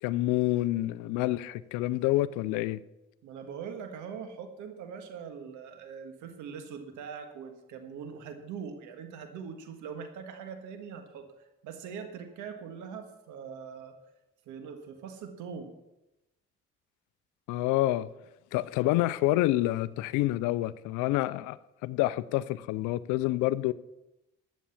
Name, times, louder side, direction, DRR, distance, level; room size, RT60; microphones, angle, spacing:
voice 1, 0.0-2.8 17.5-18.1 18.5-23.7, left 16 dB, 90° left, 0.5 m, -28 dB
voice 2, 3.2-11.3 11.6-13.9 14.4-15.7, right 6 dB, 85° right, 1.7 m, -42 dB
12.5 x 8.3 x 7.1 m
supercardioid pair, 55°, 29 cm